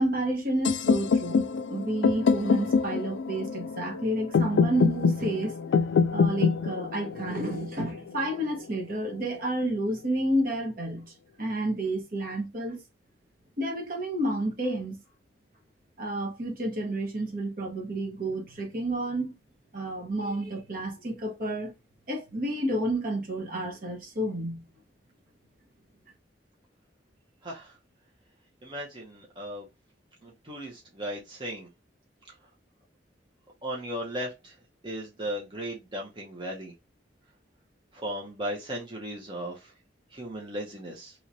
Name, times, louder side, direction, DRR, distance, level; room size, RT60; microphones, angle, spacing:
voice 1, 0.0-5.5 6.1-11.1 11.4-12.8 13.6-15.0 16.0-19.3 19.7-21.7 22.1-24.6, right 1 dB, 50° right, 1.2 m, -30 dB
sound 1, 0.6-8.6, left 5 dB, 85° left, 0.4 m, -26 dB
voice 2, 27.4-27.7 28.6-29.7 30.2-31.7 33.6-34.5 34.8-36.7 37.9-39.7 40.1-41.1, equal, 25° right, 0.8 m, -36 dB
3.1 x 3.0 x 2.7 m
head